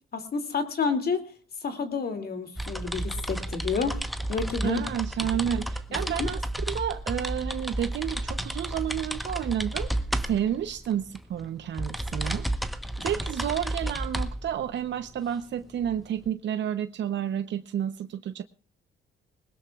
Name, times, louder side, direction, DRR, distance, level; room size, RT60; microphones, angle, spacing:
voice 1, 0.1-1.3 1.6-4.8 5.9-6.3 13.0-13.1, left 5 dB, 50° left, 2.7 m, -30 dB
sound 1, 2.6-16.3, right 1 dB, ahead, 1.1 m, -32 dB
voice 2, 4.6-6.4 6.7-9.9 10.3-12.5 13.0-18.4, right 10 dB, 65° right, 0.9 m, -30 dB
21.0 x 19.5 x 2.4 m
cardioid pair, 90°, 20 cm